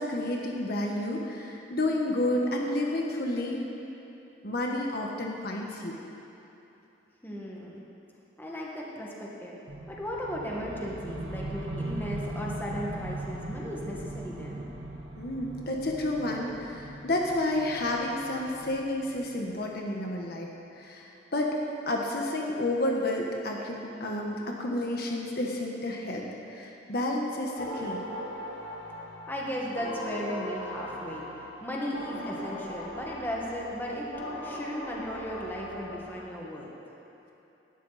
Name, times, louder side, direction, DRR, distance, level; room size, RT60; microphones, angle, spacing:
voice 1, 0.0-3.6 4.4-6.0 15.2-21.6 21.9-28.0, left 1 dB, 55° left, 0 dB, 1.3 m, -30 dB
voice 2, 7.2-7.8 8.4-9.6 9.9-14.6 29.3-34.1 34.4-36.7, equal, 10° left, -4 dB, 1.8 m, -36 dB
sound 1, 9.7-19.7, right 1 dB, 75° right, 1.5 m, -39 dB
sound 2, 27.6-36.3, left 1 dB, 80° left, 2.6 m, -39 dB
18.0 x 12.0 x 4.2 m, 3.0 s
head